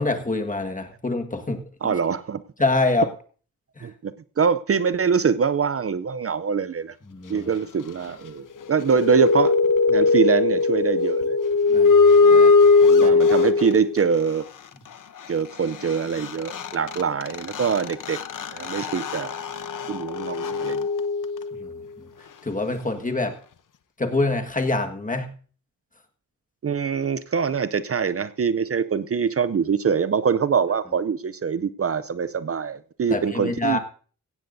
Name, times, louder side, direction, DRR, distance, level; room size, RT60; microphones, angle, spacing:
voice 1, 0.0-1.6 2.6-3.1 3.8-3.9 7.1-7.5 11.7-12.5 12.8-13.2 21.6-21.7 22.4-23.4 24.0-25.3 33.1-33.8, left 2 dB, 25° left, 1.7 m, -25 dB
voice 2, 1.8-2.4 3.8-7.0 7.3-9.5 9.9-11.4 12.3-12.4 12.9-14.5 15.3-18.2 18.5-19.3 19.9-20.9 26.6-33.8, right 6 dB, 45° right, 0.5 m, -24 dB
sound 1, 8.6-14.0 15.9-16.0 16.2-21.7, left 4 dB, 80° left, 0.9 m, -19 dB
16.5 x 15.5 x 2.7 m
wide cardioid pair, 80°, 31 cm